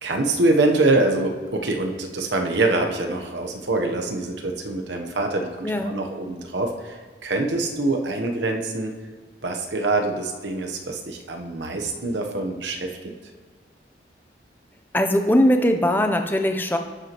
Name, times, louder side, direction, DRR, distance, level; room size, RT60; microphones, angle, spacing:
voice 1, 0.0-8.9 9.4-12.9, right 2 dB, 80° right, 3 dB, 0.9 m, -24 dB
voice 2, 14.9-16.8, left 1 dB, 10° left, 5 dB, 0.6 m, -20 dB
11.0 x 8.1 x 3.0 m, 1.5 s
head